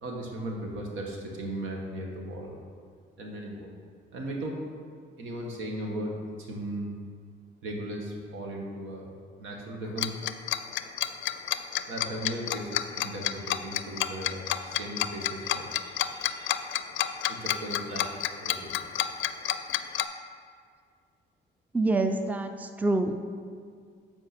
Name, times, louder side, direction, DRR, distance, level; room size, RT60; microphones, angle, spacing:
voice 1, 0.0-2.6 3.2-3.7 4.1-4.6 5.2-6.9 7.6-9.0 9.4-10.1 11.9-16.6 17.3-18.9, right 1 dB, 85° right, 0 dB, 1.5 m, -37 dB
Tick-tock, 10.0-20.0, left 12 dB, 75° left, 0.4 m, -29 dB
voice 2, 21.7-23.2, right 2 dB, 10° right, 7 dB, 0.5 m, -26 dB
8.4 x 4.5 x 6.0 m, 2.1 s
cardioid pair, 90°, 20 cm